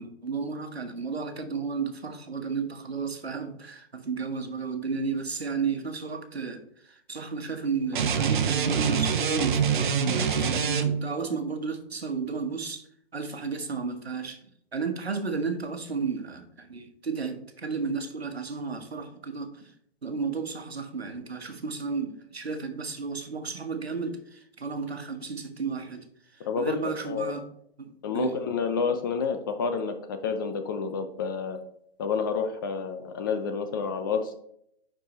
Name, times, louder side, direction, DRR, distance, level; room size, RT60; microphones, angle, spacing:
voice 1, 0.0-12.9 13.1-14.4 14.7-19.7 20.0-26.0 26.3-27.5 27.8-28.4, right 5 dB, 85° right, 1.4 m, -33 dB
sound 1, 7.9-11.2, right 6 dB, 50° right, 0.9 m, -25 dB
voice 2, 26.5-27.3 28.0-31.6 32.0-34.4, left 5 dB, 20° left, 0.4 m, -29 dB
10.0 x 4.7 x 3.0 m
figure-of-eight pair, 130°, 31 cm